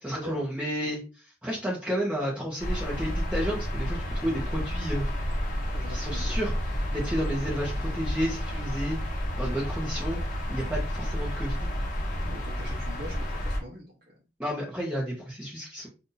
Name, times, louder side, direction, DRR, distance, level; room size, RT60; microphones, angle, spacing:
voice 1, 0.0-1.0 1.4-5.0 5.9-6.5 6.9-9.0 9.4-10.2 10.5-11.7 14.4-15.9, equal, 5° right, -5 dB, 0.9 m, -31 dB
sound 1, 2.6-13.6, equal, 50° left, 0.9 m, -31 dB
voice 2, 5.7-6.3 12.2-13.9, equal, 55° right, -4 dB, 0.9 m, -42 dB
2.7 x 2.5 x 3.9 m, 0.31 s
head